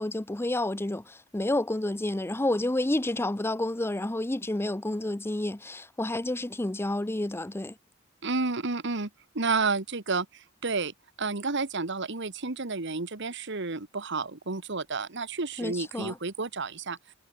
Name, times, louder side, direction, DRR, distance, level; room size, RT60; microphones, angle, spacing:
voice 1, 0.0-7.8 15.6-16.2, left 1 dB, 10° left, 0.6 m, -30 dB
voice 2, 8.2-9.1 9.3-17.0, right 4 dB, 60° right, 1.6 m, -31 dB
head